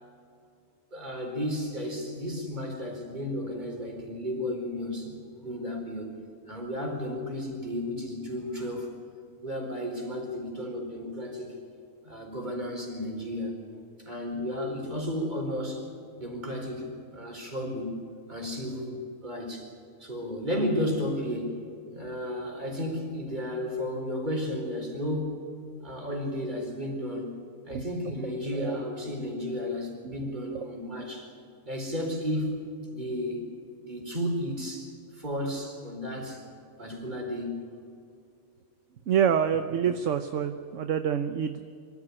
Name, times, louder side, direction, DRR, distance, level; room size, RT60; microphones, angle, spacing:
voice 1, 0.9-5.2 5.4-6.2 6.5-8.9 9.4-11.5 12.0-13.6 14.0-15.9 16.2-18.0 18.3-19.7 20.0-21.6 21.9-25.4 25.8-31.3 31.6-32.6 32.9-33.5 33.8-36.4 36.8-37.7, left 1 dB, 30° right, 1 dB, 4.7 m, -33 dB
voice 2, 27.7-28.2 28.5-28.8 30.0-30.1 39.1-41.6, right 8 dB, 60° right, 8 dB, 1.2 m, -27 dB
25.0 x 14.5 x 9.9 m, 2.5 s
omnidirectional pair, 1.5 m